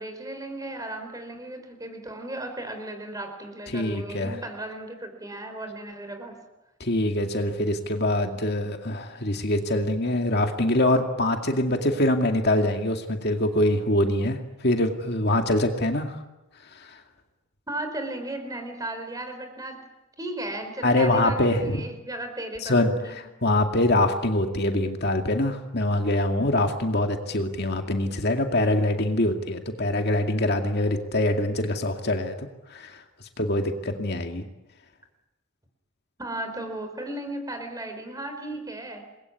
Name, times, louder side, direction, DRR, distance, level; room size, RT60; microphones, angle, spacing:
voice 1, 0.0-6.4 17.7-19.9 20.2-23.1 36.2-39.1, right 1 dB, 15° right, 7 dB, 4.5 m, -35 dB
voice 2, 3.7-4.4 6.8-16.2 16.7-17.0 20.8-21.8 22.6-33.0 33.4-34.4, left 1 dB, 50° left, 4 dB, 2.3 m, -24 dB
28.5 x 21.5 x 9.7 m, 1.0 s
head